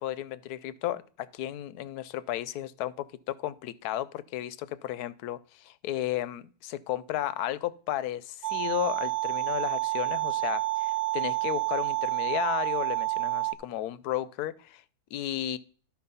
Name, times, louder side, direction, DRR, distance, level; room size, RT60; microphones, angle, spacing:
voice 1, 0.0-14.8 15.1-15.6, left 13 dB, 90° left, 17 dB, 1.1 m, -33 dB
sound 1, 8.4-13.6, right 19 dB, 55° right, 0.9 m, -29 dB
11.5 x 4.4 x 5.5 m, 0.42 s
omnidirectional pair, 1.6 m